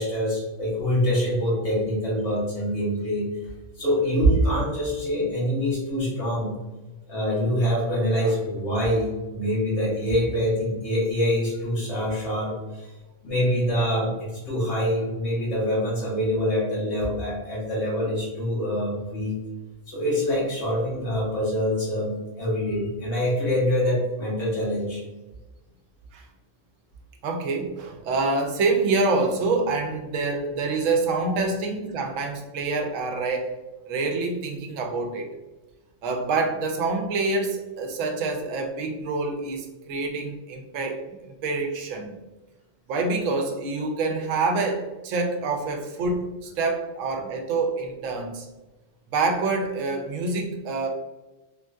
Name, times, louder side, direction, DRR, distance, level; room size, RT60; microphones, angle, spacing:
voice 1, 0.0-3.3 3.8-6.5 7.1-12.9 13.2-19.4 19.9-25.0, equal, 60° left, -7 dB, 1.6 m, -25 dB
voice 2, 27.2-33.6 33.9-35.3 36.0-41.2 41.4-42.1 42.9-48.5 49.1-50.9, right 3 dB, 85° right, 3 dB, 1.0 m, -26 dB
3.7 x 2.6 x 2.3 m, 1.1 s
omnidirectional pair, 1.3 m